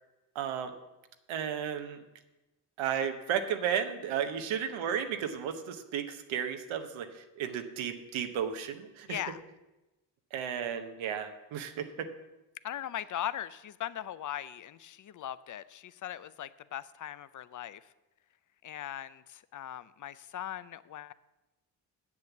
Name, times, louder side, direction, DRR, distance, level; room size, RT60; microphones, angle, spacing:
voice 1, 0.3-0.7 1.3-2.0 2.8-9.2 10.3-12.1, right 8 dB, 85° right, 7 dB, 1.0 m, -34 dB
voice 2, 9.1-9.4 12.6-17.8 18.6-21.1, left 11 dB, 40° left, 16 dB, 0.6 m, -39 dB
7.8 x 7.3 x 7.2 m, 1.0 s
supercardioid pair, 50°, 46 cm